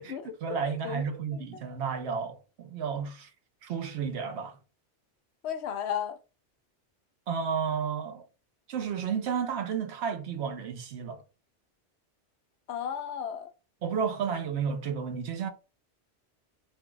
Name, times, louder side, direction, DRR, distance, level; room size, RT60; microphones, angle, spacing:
voice 1, 0.0-3.3 3.6-4.6 7.3-8.2 8.7-11.2 13.8-15.5, right 6 dB, 70° right, 0.9 m, -32 dB
voice 2, 0.7-1.0 1.3-1.6 5.4-6.2 12.7-13.5, left 8 dB, 75° left, 0.9 m, -34 dB
2.6 x 2.3 x 3.8 m
omnidirectional pair, 1.2 m